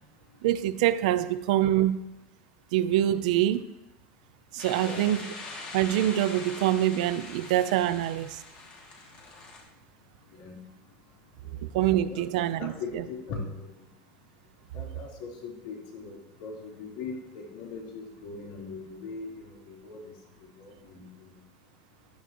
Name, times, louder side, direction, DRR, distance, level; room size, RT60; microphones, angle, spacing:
voice 1, 0.4-2.0 2.7-3.7 4.5-5.2 5.7-8.4 11.6-13.0, right 12 dB, 85° right, 14 dB, 0.6 m, -25 dB
sound 1, 4.6-9.6, left 3 dB, 35° left, 2.8 m, -42 dB
voice 2, 4.8-5.1 10.3-10.6 11.4-11.6 12.0-13.7 14.7-21.3, left 4 dB, 65° left, -2 dB, 3.9 m, -40 dB
14.5 x 11.5 x 3.1 m, 0.93 s
cardioid pair, 180°, 4 cm